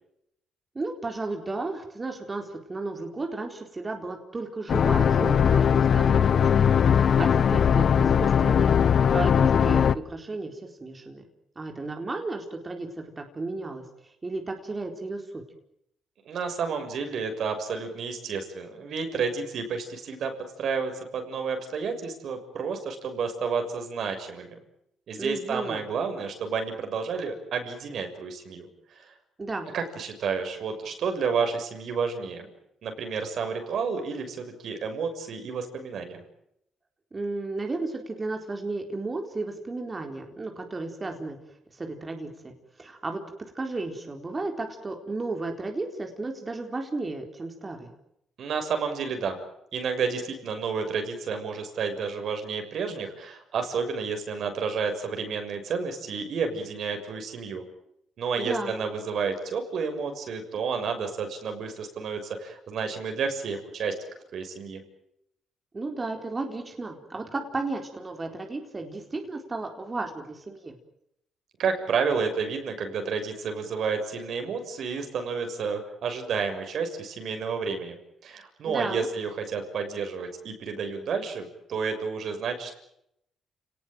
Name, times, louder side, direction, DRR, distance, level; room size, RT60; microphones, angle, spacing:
voice 1, 0.7-8.7 9.1-11.2 11.6-15.4 25.2-25.8 29.4-29.7 37.1-41.4 41.7-43.2 43.5-47.9 58.4-58.8 65.7-70.8 78.6-79.1, right 3 dB, 25° right, 3 dB, 4.2 m, -34 dB
sound 1, 4.7-9.9, left 8 dB, 55° left, 1.0 m, -20 dB
voice 2, 16.2-20.3 20.6-24.6 25.1-28.7 28.9-29.1 29.7-32.5 32.8-36.2 48.4-49.4 49.7-57.6 58.2-63.9 64.3-64.8 71.6-78.0 78.2-82.8, right 5 dB, 65° right, 6 dB, 6.6 m, -30 dB
30.0 x 19.0 x 9.2 m, 0.79 s
cardioid pair, 90°, 0 cm